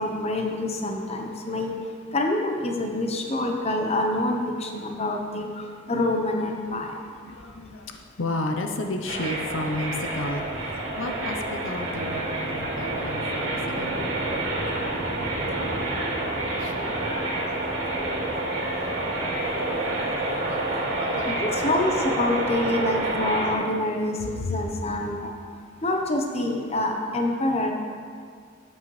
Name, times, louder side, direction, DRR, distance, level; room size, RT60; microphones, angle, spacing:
voice 1, 0.0-1.7 2.1-6.9 21.3-25.3 25.8-27.7, left 2 dB, 35° left, 2 dB, 0.9 m, -26 dB
voice 2, 7.2-14.0 16.4-16.8 20.5-21.4 24.3-24.6, left 2 dB, 85° left, 4 dB, 0.7 m, -33 dB
sound 1, 9.1-23.5, right 2 dB, 70° right, 2.2 m, -28 dB
13.0 x 8.4 x 3.2 m, 2.1 s
head